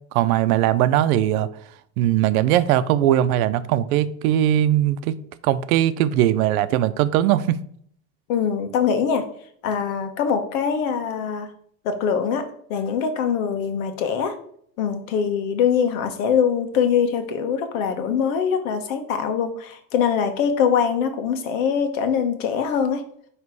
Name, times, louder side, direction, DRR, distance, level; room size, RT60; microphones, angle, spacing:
voice 1, 0.1-1.5 2.0-5.2 5.4-7.6, right 12 dB, 90° right, 13 dB, 0.7 m, -20 dB
voice 2, 8.3-9.2 9.6-11.5 11.8-12.4 12.7-14.3 14.8-23.0, left 7 dB, 70° left, 7 dB, 1.3 m, -23 dB
9.4 x 3.2 x 4.7 m, 0.64 s
cardioid pair, 180°, 42 cm